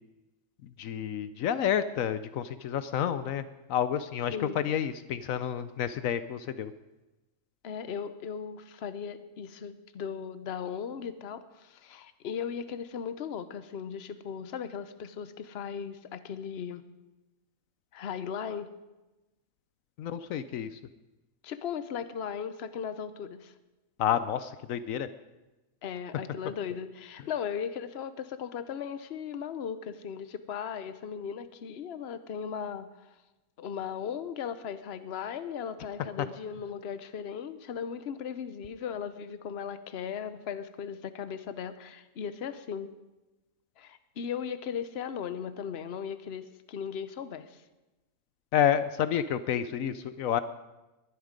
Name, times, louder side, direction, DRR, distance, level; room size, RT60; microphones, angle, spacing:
voice 1, 0.8-6.7 20.0-20.7 24.0-25.1 48.5-50.4, left 9 dB, 80° left, 13 dB, 1.1 m, -29 dB
voice 2, 7.6-16.8 17.9-18.7 21.4-23.5 25.8-33.1 33.6-42.9 43.8-47.6, left 7 dB, 55° left, 12 dB, 1.0 m, -37 dB
20.5 x 11.5 x 5.2 m, 1.1 s
omnidirectional pair, 1.4 m